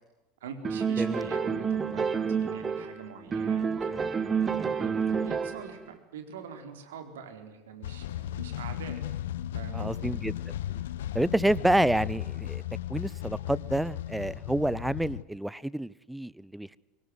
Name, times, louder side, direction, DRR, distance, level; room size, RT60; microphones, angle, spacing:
voice 1, 0.4-4.1 4.6-9.0 9.5-10.1, right 6 dB, 70° right, 6 dB, 4.3 m, -44 dB
sound 1, 0.6-3.0 3.3-5.7, right 6 dB, 25° right, 2.2 m, -29 dB
voice 2, 1.0-1.3 4.8-5.2 9.7-10.4 11.1-12.6 12.9-16.8, right 1 dB, 5° right, 22 dB, 0.8 m, -29 dB
sound 2, 7.8-15.2, left 12 dB, 70° left, 1.2 m, -35 dB
25.0 x 23.5 x 9.6 m, 1.0 s
figure-of-eight pair, 75°, 0 cm